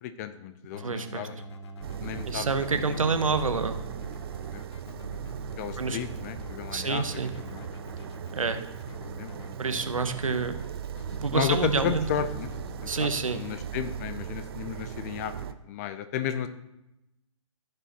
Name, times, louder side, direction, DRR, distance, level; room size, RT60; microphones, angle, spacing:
voice 1, 0.0-1.4 2.0-2.8 4.5-4.7 5.1-7.0 7.4-7.7 9.0-9.6 9.9-10.5 11.3-12.5 12.8-15.3 15.6-16.5, left 9 dB, 30° left, 11 dB, 0.5 m, -34 dB
Keyboard (musical), 0.7-12.8, left 1 dB, 55° left, 0.9 m, -44 dB
voice 2, 0.8-1.3 2.3-3.8 5.8-6.0 6.7-7.3 8.3-8.6 9.6-10.6 11.2-12.0 12.9-13.4, right 4 dB, 80° right, 9 dB, 0.8 m, -28 dB
sound 1, 1.8-15.5, right 9 dB, 45° right, 0.5 m, -38 dB
15.0 x 5.0 x 2.9 m, 0.89 s
figure-of-eight pair, 125°, 17 cm